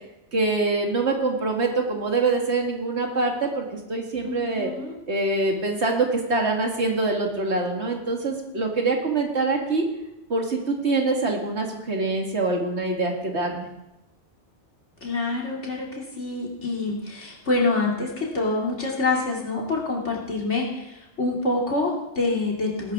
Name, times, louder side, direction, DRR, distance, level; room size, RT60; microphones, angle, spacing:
voice 1, 0.3-4.7 5.1-9.8 10.3-13.7, right 3 dB, 70° right, 1 dB, 2.2 m, -24 dB
voice 2, 4.2-5.0 15.0-22.9, left 3 dB, 80° left, -2 dB, 3.2 m, -26 dB
19.0 x 11.5 x 3.7 m, 0.91 s
omnidirectional pair, 1.2 m